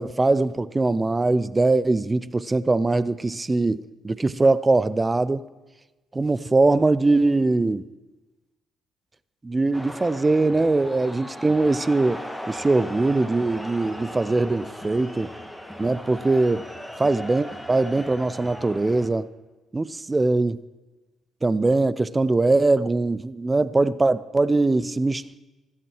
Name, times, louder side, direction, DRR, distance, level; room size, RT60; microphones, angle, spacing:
voice 1, 0.0-5.5 6.1-7.9 9.4-15.3 15.8-16.6 17.0-19.3 19.7-20.6 21.4-25.2, right 2 dB, 25° right, 0.6 m, -22 dB
sound 1, 9.7-19.1, equal, 5° right, 1.9 m, -37 dB
15.0 x 14.5 x 4.8 m
hypercardioid pair, 45°, 0 cm